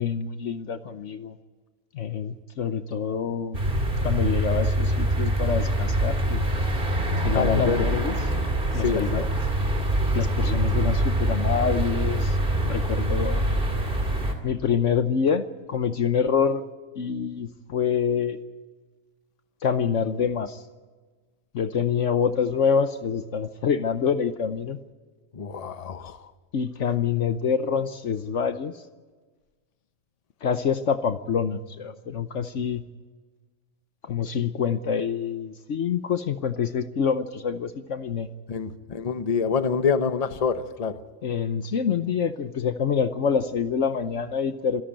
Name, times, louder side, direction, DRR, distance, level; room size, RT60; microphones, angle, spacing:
voice 1, 0.0-1.4 1.9-3.6 4.0-6.5 7.2-8.1 8.7-9.3 10.1-12.4 12.6-13.4 14.4-16.6 17.0-18.4 19.6-20.6 21.5-24.8 26.5-28.7 30.4-32.8 34.0-38.3 41.2-44.8, left 6 dB, 60° left, 10 dB, 1.1 m, -26 dB
sound 1, 3.5-14.3, right 1 dB, 40° right, 2.7 m, -24 dB
voice 2, 7.3-7.9 8.7-9.2 25.3-26.3 38.5-40.9, left 6 dB, 30° left, 10 dB, 1.0 m, -26 dB
26.5 x 11.5 x 8.9 m, 1.3 s
omnidirectional pair, 1.5 m